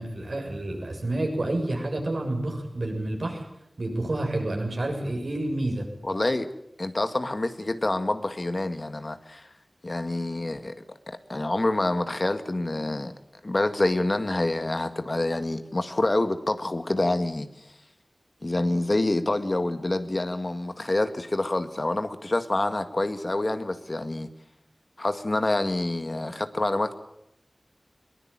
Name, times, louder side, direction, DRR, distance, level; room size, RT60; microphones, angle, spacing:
voice 1, 0.0-3.4 3.8-5.9, right 1 dB, 70° right, 2 dB, 7.3 m, -29 dB
voice 2, 6.0-6.5 6.8-9.5 9.8-10.8 11.1-13.1 13.4-17.5 18.4-24.3 25.0-27.0, left 2 dB, 45° left, 9 dB, 1.8 m, -27 dB
22.5 x 19.5 x 8.9 m, 0.81 s
wide cardioid pair, 40°, 0 cm